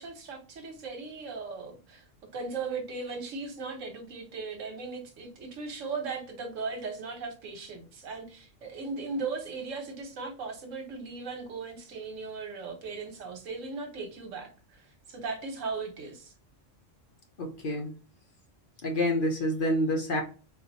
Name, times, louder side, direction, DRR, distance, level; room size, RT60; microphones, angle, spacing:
voice 1, 0.0-2.0 2.3-14.8 15.1-16.3, right 4 dB, 80° right, 1.2 m, -37 dB
voice 2, 17.4-17.9 18.8-20.2, left 1 dB, 50° left, 0.7 m, -27 dB
3.6 x 2.6 x 2.6 m
omnidirectional pair, 1.3 m